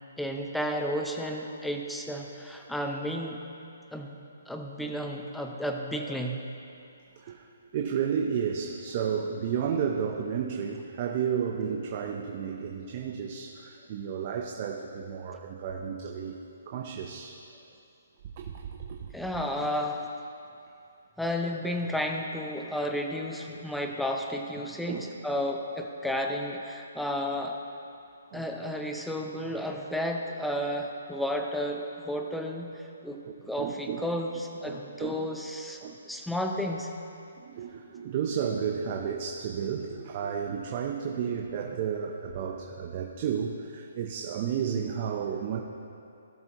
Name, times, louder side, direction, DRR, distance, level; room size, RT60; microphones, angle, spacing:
voice 1, 0.2-3.4 3.9-4.2 4.5-6.5 19.1-20.1 21.2-27.6 28.3-33.2 33.5-35.8 36.1-36.9, equal, ahead, 2 dB, 0.7 m, -32 dB
voice 2, 7.7-16.4 16.7-17.4 18.4-19.1 24.9-25.1 28.3-28.5 33.2-34.1 34.6-35.3 35.8-36.0 37.4-45.6, right 7 dB, 40° right, 2 dB, 0.7 m, -32 dB
17.0 x 6.8 x 3.0 m, 2.6 s
hypercardioid pair, 155°, 0 cm